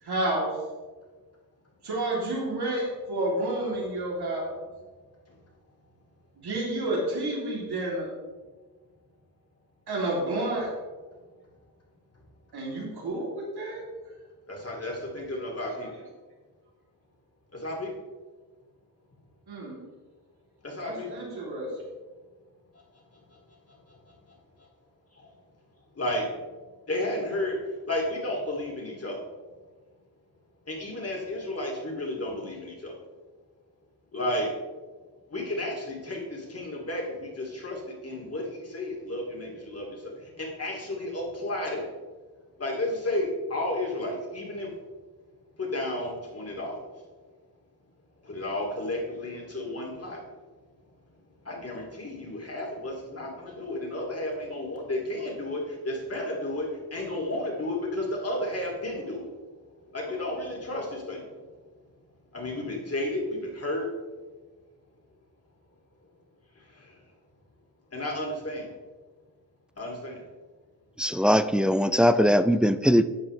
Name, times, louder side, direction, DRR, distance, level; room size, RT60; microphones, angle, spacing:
voice 1, 0.0-0.5 1.8-4.5 6.4-8.1 9.9-10.7 12.5-13.8 15.6-15.9 19.5-19.8 20.8-21.7, right 1 dB, 80° right, -4 dB, 3.0 m, -30 dB
voice 2, 14.5-15.9 17.5-17.9 20.6-21.1 25.1-25.3 26.0-26.3 26.9-27.6 27.9-29.3 30.7-33.0 34.1-34.5 35.3-41.9 42.6-44.7 45.6-47.0 48.2-50.2 51.4-59.5 59.9-61.3 62.3-63.9 66.6-66.9 67.9-68.7 69.8-70.2, left 1 dB, 40° left, -1 dB, 2.5 m, -32 dB
voice 3, 71.0-73.0, equal, 5° right, 11 dB, 0.3 m, -21 dB
11.0 x 7.6 x 3.2 m, 1.3 s
wide cardioid pair, 95°, 39 cm